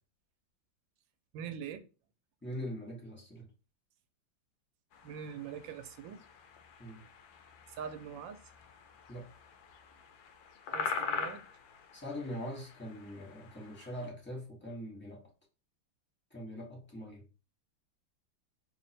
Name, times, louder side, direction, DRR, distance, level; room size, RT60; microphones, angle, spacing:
voice 1, 1.3-1.8 5.0-6.2 7.7-8.4 10.7-11.4, right 8 dB, 85° right, 1.3 m, -43 dB
voice 2, 2.4-3.5 6.8-7.0 9.1-9.3 11.9-15.2 16.3-17.2, equal, 15° left, 0.4 m, -42 dB
sound 1, 4.9-14.1, left 5 dB, 85° left, 1.3 m, -43 dB
3.4 x 2.0 x 4.1 m
omnidirectional pair, 2.0 m